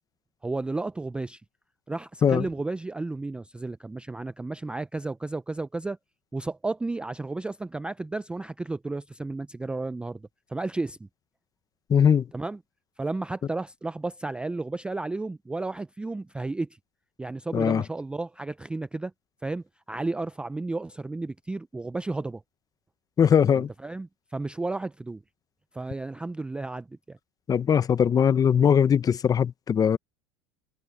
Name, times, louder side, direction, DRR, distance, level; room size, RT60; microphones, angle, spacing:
voice 1, 0.4-1.4 1.9-6.0 6.3-11.0 12.3-12.6 13.0-16.7 17.2-19.1 19.4-22.4 23.6-25.2 25.7-27.2, right 3 dB, 5° right, 0.4 m, -33 dB
voice 2, 11.9-12.2 17.5-17.8 23.2-23.7 27.5-30.0, left 7 dB, 25° left, 0.7 m, -20 dB
supercardioid pair, 125°, 15 cm